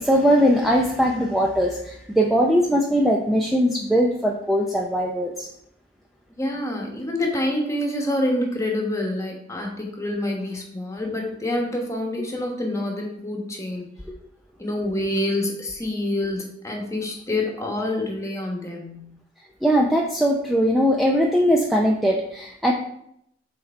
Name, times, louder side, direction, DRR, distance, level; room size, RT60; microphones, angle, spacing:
voice 1, 0.0-5.5 19.6-22.7, equal, ahead, -2 dB, 0.5 m, -20 dB
voice 2, 6.3-13.9 14.6-19.1, left 1 dB, 15° left, 0 dB, 1.2 m, -27 dB
6.7 x 3.9 x 4.4 m, 0.73 s
head